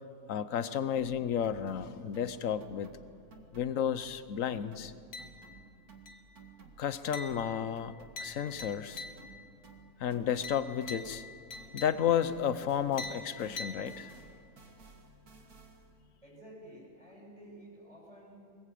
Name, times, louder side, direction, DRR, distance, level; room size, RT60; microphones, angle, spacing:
voice 1, 0.3-2.9 3.5-4.9 6.8-9.0 10.0-11.2 11.7-14.1, left 9 dB, 65° left, 13 dB, 1.2 m, -32 dB
sound 1, 1.0-4.4 4.7-12.0 12.2-16.0, right 4 dB, 80° right, 2.4 m, -56 dB
sound 2, 5.1-5.7 6.1-6.5 7.1-9.5 10.4-12.3 13.0-14.4, left 3 dB, 85° left, 1.9 m, -45 dB
voice 2, 15.9-18.6, right 1 dB, 25° right, -3 dB, 7.4 m, -52 dB
22.0 x 20.5 x 8.5 m, 2.4 s
omnidirectional pair, 1.5 m